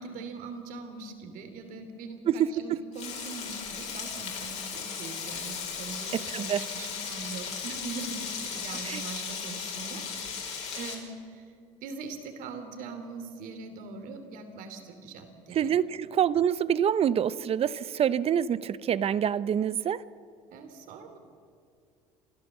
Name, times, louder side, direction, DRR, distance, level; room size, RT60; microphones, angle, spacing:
voice 1, 0.0-11.5 11.8-15.7 20.5-21.2, right 4 dB, 65° right, 7 dB, 3.0 m, -42 dB
Frying (food), 2.9-10.9, left 6 dB, 45° left, 4.7 m, -36 dB
voice 2, 6.1-6.6 8.9-9.0 15.6-20.0, right 9 dB, 40° right, 18 dB, 0.6 m, -26 dB
29.0 x 12.0 x 7.3 m, 2.2 s
supercardioid pair, 85°, 15 cm